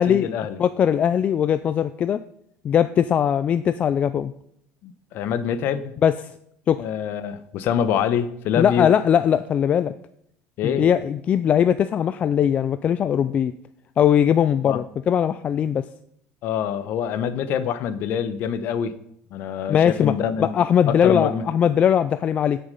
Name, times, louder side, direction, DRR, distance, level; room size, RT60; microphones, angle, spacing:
voice 1, 0.0-0.6 4.8-5.9 6.8-8.9 10.6-10.9 14.6-14.8 16.4-18.9 19.3-20.5 20.9-21.4, left 8 dB, 55° left, 13 dB, 1.0 m, -25 dB
voice 2, 0.6-2.2 2.6-4.3 6.0-6.1 6.7-6.8 8.6-9.9 10.6-13.5 14.0-15.9 19.7-20.1 20.4-22.6, left 9 dB, 30° left, 12 dB, 0.4 m, -20 dB
16.0 x 6.8 x 5.4 m, 0.73 s
cardioid pair, 140°, 4 cm